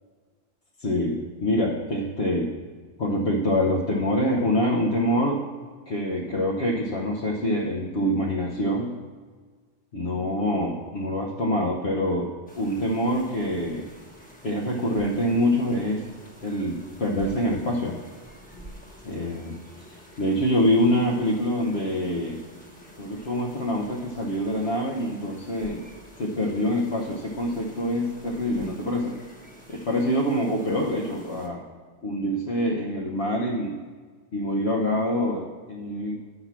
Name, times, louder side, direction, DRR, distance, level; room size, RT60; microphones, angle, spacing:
voice 1, 0.8-2.5 3.0-5.5 5.9-8.9 9.9-12.3 12.6-13.9 14.4-16.1 16.4-18.0 19.0-22.4 23.0-25.8 26.2-29.2 29.7-31.6 32.0-33.8 34.3-36.2, equal, 55° left, -3 dB, 1.2 m, -25 dB
sound 1, 12.5-31.5, right 1 dB, 5° left, 1.1 m, -46 dB
9.6 x 5.9 x 5.9 m, 1.5 s
omnidirectional pair, 1.4 m